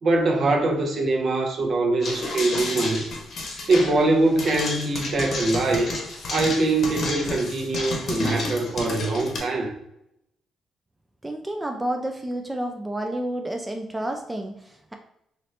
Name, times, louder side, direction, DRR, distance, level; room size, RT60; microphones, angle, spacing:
voice 1, 0.0-3.0 3.7-5.9 6.3-9.7, right 2 dB, 55° right, 2 dB, 0.7 m, -23 dB
sound 1, 2.0-9.4, left 3 dB, 60° left, 0.8 m, -31 dB
voice 2, 11.2-14.9, right 1 dB, 10° right, 3 dB, 0.3 m, -30 dB
2.8 x 2.6 x 3.2 m, 0.80 s
cardioid pair, 90°, 0 cm